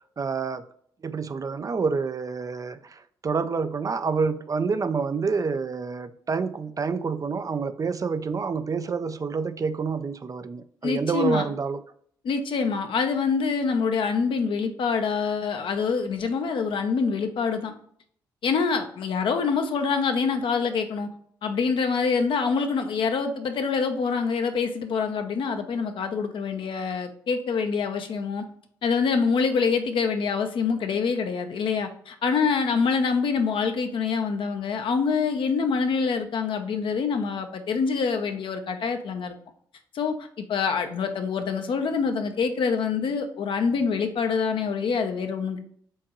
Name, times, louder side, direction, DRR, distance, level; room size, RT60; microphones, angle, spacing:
voice 1, 0.2-0.6 1.0-11.8, right 5 dB, 40° right, 0.4 m, -28 dB
voice 2, 10.8-11.5 12.2-17.7 18.4-21.1 21.4-28.4 28.8-39.4 39.9-45.6, left 5 dB, 65° left, 0.7 m, -25 dB
4.5 x 3.7 x 3.0 m
hypercardioid pair, 45°, 9 cm